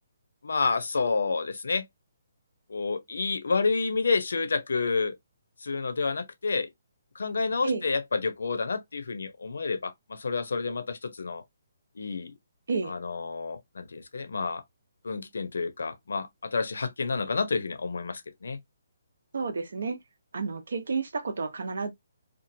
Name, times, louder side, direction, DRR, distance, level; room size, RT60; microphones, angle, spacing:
voice 1, 0.4-1.9 2.7-5.2 5.6-6.7 7.1-11.4 12.0-12.3 12.8-14.6 15.0-18.6, left 4 dB, 80° left, 0.6 m, -29 dB
voice 2, 19.3-20.0 20.3-21.9, right 4 dB, 70° right, 0.8 m, -30 dB
2.9 x 2.3 x 2.6 m
hypercardioid pair, 175°, 0 cm